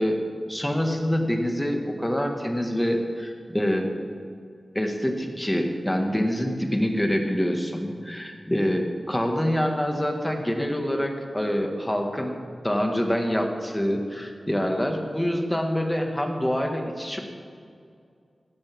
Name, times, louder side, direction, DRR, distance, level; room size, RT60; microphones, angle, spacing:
voice 1, 0.0-3.9 4.7-12.4 12.6-17.2, equal, 10° left, 3 dB, 1.8 m, -26 dB
16.0 x 12.0 x 3.7 m, 2.3 s
wide cardioid pair, 65°, 0 cm